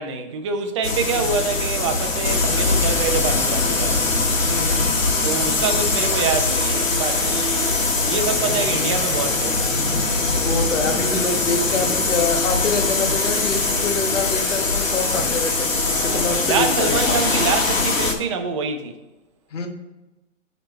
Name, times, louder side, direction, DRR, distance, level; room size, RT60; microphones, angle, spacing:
voice 1, 0.0-4.0 5.2-7.7 8.0-9.8 13.5-14.0 15.9-18.9, right 5 dB, 25° right, 0.6 m, -26 dB
sound 1, 0.8-18.1, left 3 dB, 85° left, 1.9 m, -21 dB
voice 2, 4.4-4.9 10.3-17.2 19.5-19.7, left 4 dB, 70° left, 1.3 m, -26 dB
8.8 x 4.0 x 4.3 m
hypercardioid pair, 145°, 38 cm